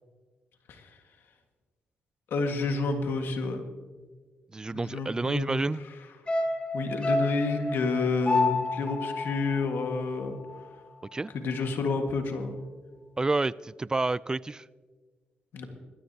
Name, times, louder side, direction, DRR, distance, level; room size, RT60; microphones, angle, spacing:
voice 1, 2.3-3.6 4.7-5.6 6.7-10.4 11.3-12.5 15.5-15.6, left 3 dB, 70° left, 4 dB, 1.8 m, -29 dB
voice 2, 4.5-5.8 11.1-11.3 13.2-14.7, right 3 dB, 20° right, 20 dB, 0.3 m, -29 dB
sound 1, 6.3-10.7 11.0-11.1, left 2 dB, 30° left, 1.6 m, -30 dB
20.5 x 13.5 x 2.9 m, 1.4 s
cardioid pair, 70°, 4 cm